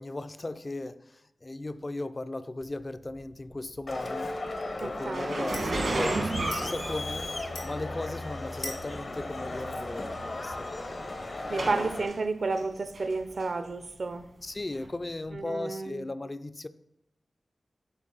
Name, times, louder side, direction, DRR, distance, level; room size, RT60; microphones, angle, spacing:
voice 1, 0.0-4.4 4.8-7.4 7.6-10.7 11.5-11.8 14.4-16.7, left 2 dB, 30° left, 12 dB, 0.3 m, -37 dB
sound 1, 2.6-15.4, left 2 dB, 80° left, 1.5 m, -49 dB
Crowd, 3.9-12.1, left 2 dB, 55° left, 0.8 m, -36 dB
voice 2, 4.8-5.4 11.5-14.3 15.3-16.0, right 3 dB, 65° right, 10 dB, 0.5 m, -31 dB
sound 2, 5.1-7.7 8.5-8.7 9.5-9.6 9.9-10.2 10.8-12.2 12.6-13.1 13.4-13.5 14.7-14.8, right 2 dB, 85° right, 1.4 m, -32 dB
9.7 x 4.1 x 3.9 m, 0.83 s
wide cardioid pair, 90°, 0 cm